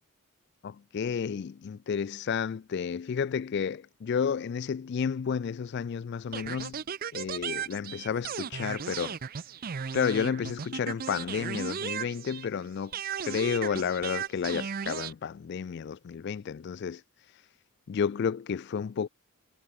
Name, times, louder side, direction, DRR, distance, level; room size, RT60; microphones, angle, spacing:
voice 1, 0.6-6.8 7.1-9.2 9.9-12.9 13.3-17.0 17.3-17.4 17.9-19.1, left 6 dB, 50° left, 0.3 m, -31 dB
sound 1, 6.3-12.6 12.9-15.1, right 7 dB, 40° right, 0.5 m, -36 dB
head